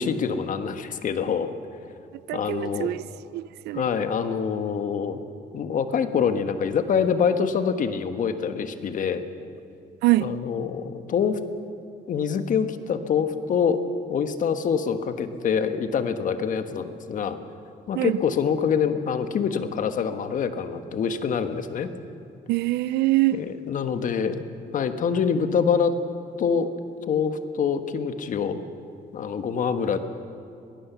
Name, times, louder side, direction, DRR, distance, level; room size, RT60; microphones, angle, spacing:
voice 1, 0.0-1.5 2.3-2.9 3.7-5.2 5.5-9.2 10.2-11.4 12.1-13.8 14.1-17.4 17.9-21.9 23.3-24.4 24.7-25.9 26.4-26.7 27.1-28.6 29.1-30.0, left 6 dB, 50° left, 1.4 m, -25 dB
voice 2, 2.3-3.0 3.3-3.8 10.0-10.3 17.9-18.2 22.5-23.4, right 17 dB, 80° right, 0.5 m, -24 dB
22.0 x 17.0 x 7.0 m
cardioid pair, 110°, 17 cm